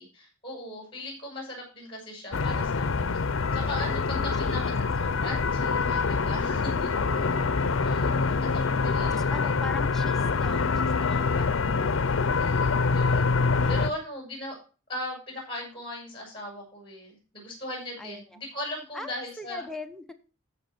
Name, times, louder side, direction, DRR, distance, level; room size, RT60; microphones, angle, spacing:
voice 1, 0.0-3.2 3.5-6.9 7.8-9.2 12.4-14.6 14.9-19.6, left 1 dB, 25° left, 0 dB, 6.3 m, -38 dB
sound 1, 2.3-13.9, left 4 dB, 75° left, 0.6 m, -25 dB
voice 2, 4.1-4.8 6.7-7.4 9.0-12.0 13.4-14.0 18.0-18.4 18.9-20.1, left 2 dB, ahead, 4 dB, 0.9 m, -42 dB
14.0 x 5.5 x 4.3 m, 0.35 s
head